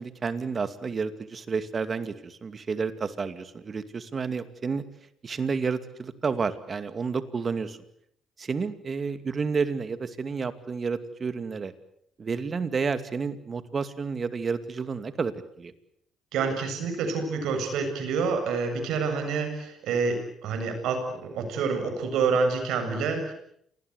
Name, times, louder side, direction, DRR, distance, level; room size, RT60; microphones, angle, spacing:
voice 1, 0.0-4.8 5.2-7.8 8.4-11.7 12.2-15.7, right 5 dB, 40° right, 11 dB, 2.4 m, -30 dB
voice 2, 16.3-23.3, right 4 dB, 80° right, 6 dB, 7.6 m, -27 dB
28.0 x 20.0 x 8.2 m, 0.70 s
cardioid pair, 85°, 0 cm